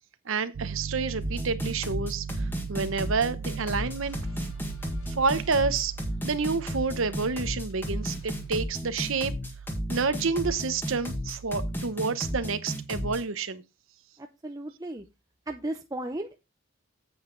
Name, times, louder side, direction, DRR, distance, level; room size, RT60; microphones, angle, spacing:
voice 1, 0.3-4.2 5.1-5.9 6.2-9.3 9.9-13.6, right 4 dB, 65° right, 0.9 m, -29 dB
Piano, 0.5-11.9, right 6 dB, 85° right, 0.4 m, -40 dB
sound 1, 1.2-13.2, equal, 10° left, 1.8 m, -33 dB
sound 2, 3.4-8.5, left 1 dB, 90° left, 6.8 m, -50 dB
voice 2, 14.2-15.0 15.5-16.4, right 1 dB, 15° right, 0.7 m, -35 dB
8.8 x 8.0 x 3.9 m
head